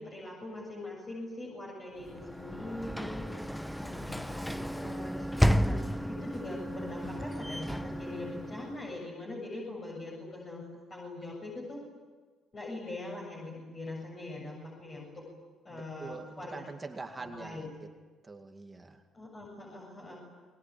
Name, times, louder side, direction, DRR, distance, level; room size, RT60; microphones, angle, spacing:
voice 1, 0.0-5.3 5.6-10.6 10.9-11.8 12.5-15.2 15.6-16.7 17.2-17.7 19.1-20.2, left 2 dB, 30° left, -3 dB, 7.6 m, -42 dB
Sliding door / Slam, 2.0-9.0, equal, 5° left, 0.8 m, -32 dB
voice 2, 15.7-17.7 18.2-19.0, right 3 dB, 20° right, 4 dB, 2.1 m, -44 dB
29.0 x 21.5 x 9.2 m, 1.4 s
cardioid pair, 120°, 0 cm